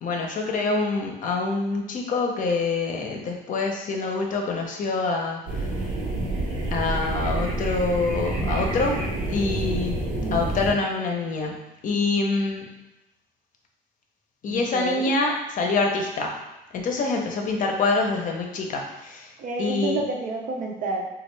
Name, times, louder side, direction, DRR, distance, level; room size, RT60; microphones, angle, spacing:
voice 1, 0.0-5.7 6.7-9.0 9.3-10.0 10.3-12.7 14.4-16.4 16.7-19.3 19.6-20.0, left 3 dB, 50° left, 1 dB, 0.6 m, -26 dB
sound 1, 5.5-10.7, right 2 dB, 90° right, 1.1 m, -28 dB
voice 2, 14.5-15.1 19.4-21.1, right 2 dB, 55° right, 1 dB, 0.6 m, -30 dB
3.3 x 2.4 x 3.2 m, 0.95 s
cardioid pair, 110°, 17 cm